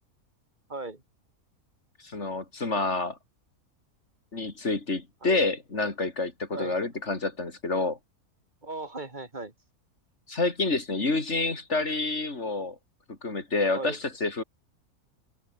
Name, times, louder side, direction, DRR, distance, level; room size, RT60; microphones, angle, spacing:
voice 1, 0.7-1.0 5.2-5.4 6.5-6.9 8.6-9.5 13.7-14.0, right 2 dB, 30° right, 3.1 m, -37 dB
voice 2, 2.0-3.2 4.3-8.0 10.3-12.8 13.1-14.4, left 3 dB, 50° left, 3.7 m, -28 dB
omnidirectional pair, 1.5 m